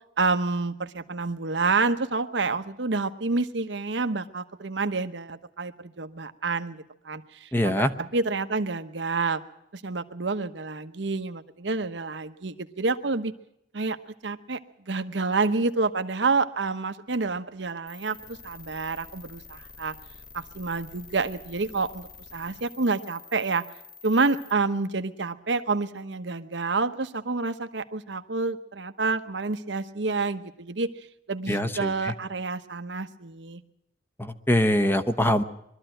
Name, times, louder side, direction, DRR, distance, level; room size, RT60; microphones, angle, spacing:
voice 1, 0.2-9.4 9.7-13.3 13.7-14.0 14.2-14.6 14.9-19.9 20.3-23.6 24.0-30.9 31.3-33.6, right 3 dB, 75° right, 9 dB, 1.0 m, -28 dB
voice 2, 7.5-7.9 31.5-32.1 34.2-35.4, left 1 dB, 10° left, 9 dB, 0.9 m, -23 dB
sound 1, 17.9-24.5, left 5 dB, 50° left, 1.8 m, -48 dB
22.0 x 13.0 x 9.0 m, 0.80 s
head